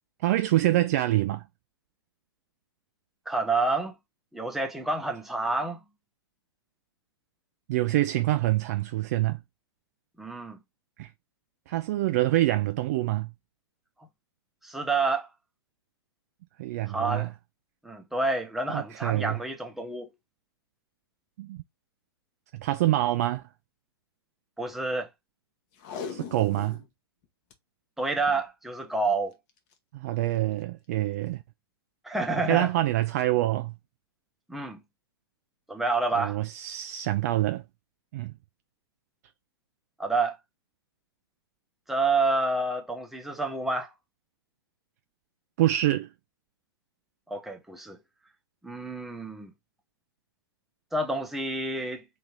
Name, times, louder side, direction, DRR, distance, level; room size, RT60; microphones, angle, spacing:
voice 1, 0.2-1.5 7.7-9.4 11.0-11.1 11.7-13.3 16.6-17.3 18.7-19.4 21.4-21.6 22.5-23.4 26.1-26.8 29.9-31.4 32.4-33.7 36.2-37.6 38.1-38.3 45.6-46.1, right 15 dB, 40° right, 0.3 m, -26 dB
voice 2, 3.3-3.9 4.3-5.8 10.2-10.6 14.6-15.3 16.9-17.3 17.8-20.1 24.6-25.1 28.0-29.3 32.0-32.7 34.5-34.8 35.7-36.4 40.0-40.4 41.9-43.9 47.3-48.0 48.6-49.5 50.9-52.0, right 3 dB, ahead, 0.7 m, -28 dB
Packing tape duct tape, 25.7-26.9 27.2-27.3 27.5-27.6 28.2-28.5 29.5-29.7 30.3-30.4, left 6 dB, 35° left, 0.8 m, -39 dB
3.2 x 2.8 x 3.9 m
figure-of-eight pair, 110°, 13 cm